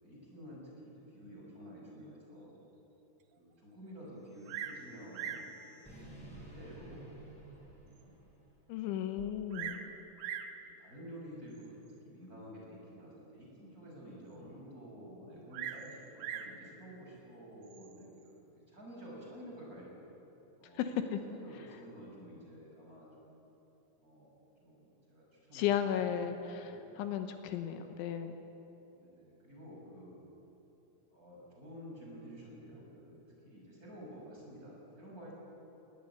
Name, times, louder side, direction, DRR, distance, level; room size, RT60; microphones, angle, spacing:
voice 1, 0.0-2.6 3.4-5.9 6.3-8.1 9.5-9.8 10.3-11.8 12.0-18.3 18.7-19.9 20.6-21.0 21.2-23.3 24.0-26.8 28.9-30.1 31.1-33.2 33.4-35.3, equal, 15° right, -4 dB, 6.4 m, -51 dB
sound 1, 4.3-8.6, right 2 dB, ahead, 7.4 m, -53 dB
Bird vocalization bird call bird song, 4.5-4.8 5.1-5.5 6.4-6.5 7.1-7.2 7.7-7.8 8.0-8.1 9.2-9.9 10.2-10.6 11.5-11.9 15.5-16.6 17.6-18.1, right 9 dB, 70° right, 2.3 m, -41 dB
voice 2, 8.7-9.8 20.8-21.2 25.5-26.7 27.0-28.3, left 9 dB, 80° left, 7 dB, 3.4 m, -34 dB
20.0 x 19.5 x 9.6 m, 3.0 s
omnidirectional pair, 5.5 m